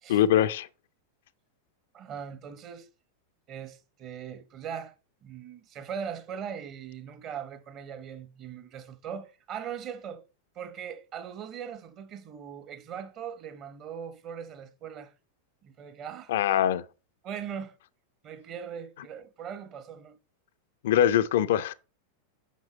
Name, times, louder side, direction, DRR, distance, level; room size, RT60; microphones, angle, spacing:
voice 1, 0.1-0.7 16.3-16.8 20.8-21.7, left 10 dB, 55° left, 0.5 m, -23 dB
voice 2, 1.9-2.9 3.5-4.9 5.2-10.2 10.5-15.1 15.6-16.3 17.2-17.8 18.2-20.2, right 8 dB, 35° right, 1.0 m, -40 dB
7.4 x 5.9 x 4.2 m
figure-of-eight pair, 90°, 0 cm